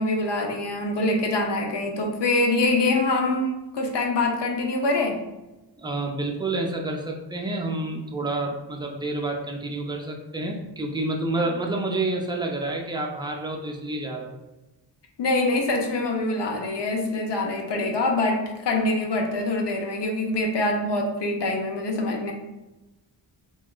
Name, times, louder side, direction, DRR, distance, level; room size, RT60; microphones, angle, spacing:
voice 1, 0.0-5.2 15.2-22.3, left 2 dB, 70° left, 2 dB, 0.5 m, -24 dB
voice 2, 5.8-14.3, right 2 dB, 10° right, 1 dB, 0.4 m, -29 dB
2.8 x 2.3 x 2.2 m, 1.0 s
wide cardioid pair, 60°, 43 cm